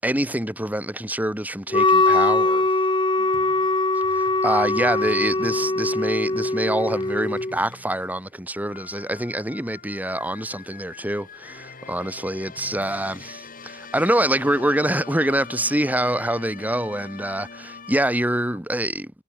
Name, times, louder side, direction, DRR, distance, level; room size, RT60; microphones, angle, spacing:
voice 1, 0.0-2.7 4.1-19.1, right 1 dB, 10° right, 4.6 m, -25 dB
Wind instrument woodwind instrument, 1.7-7.6, left 2 dB, 25° left, 2.3 m, -21 dB
sound 1, 3.2-18.6, left 4 dB, 40° left, 6.6 m, -44 dB
head